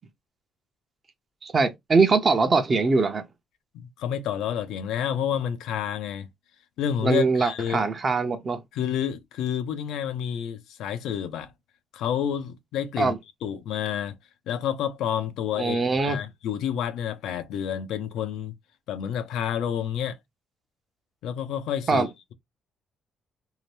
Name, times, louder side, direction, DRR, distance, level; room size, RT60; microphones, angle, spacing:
voice 1, 1.4-3.2 7.0-8.6 13.0-13.2 15.6-16.2 21.9-22.1, right 4 dB, 40° right, 0.7 m, -22 dB
voice 2, 3.7-6.3 6.8-7.9 8.7-11.5 11.9-13.1 13.4-14.2 14.5-18.5 18.9-20.2 21.2-22.0, left 9 dB, 85° left, 0.4 m, -29 dB
2.7 x 2.1 x 3.1 m
cardioid pair, 90°, 0 cm